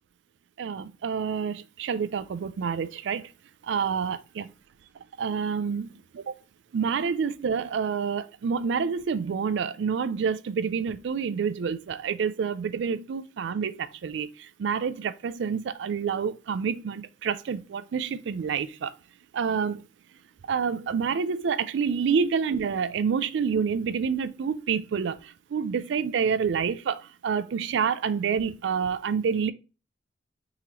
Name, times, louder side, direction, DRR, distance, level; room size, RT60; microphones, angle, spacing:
voice 1, 0.6-3.2 3.7-4.5 5.2-6.3 6.7-18.9 19.3-19.8 20.5-29.5, right 6 dB, 65° right, 0.3 m, -28 dB
3.7 x 2.9 x 3.0 m
head